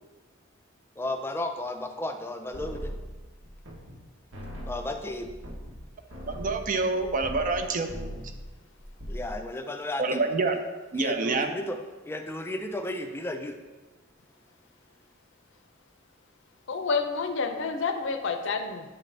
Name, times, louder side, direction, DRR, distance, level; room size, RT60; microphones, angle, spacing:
voice 1, 1.0-2.9 4.7-5.3 9.1-10.2 10.9-11.8 12.0-13.6, left 1 dB, 10° left, 6 dB, 0.4 m, -34 dB
sound 1, 2.5-4.0 4.3-7.6 7.9-8.4 8.8-9.4, equal, 85° right, 1.2 m, -39 dB
voice 2, 6.3-7.9 10.0-10.6 10.9-11.5, right 3 dB, 40° right, 6 dB, 0.5 m, -27 dB
voice 3, 16.7-18.8, left 4 dB, 65° left, 7 dB, 0.6 m, -29 dB
8.6 x 3.8 x 3.3 m, 1.2 s
head